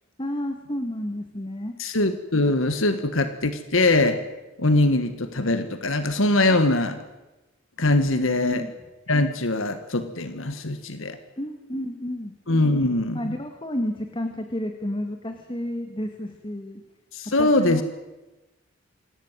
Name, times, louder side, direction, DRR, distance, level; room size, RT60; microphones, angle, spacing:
voice 1, 0.2-1.8 8.1-8.7 11.4-12.3 13.1-16.8 17.3-17.8, left 1 dB, 25° left, 5 dB, 2.1 m, -31 dB
voice 2, 1.8-4.2 4.6-7.0 7.8-8.6 9.1-11.2 12.5-13.4 17.1-17.8, left 2 dB, 75° left, 10 dB, 1.7 m, -22 dB
26.5 x 17.0 x 9.2 m, 1.1 s
head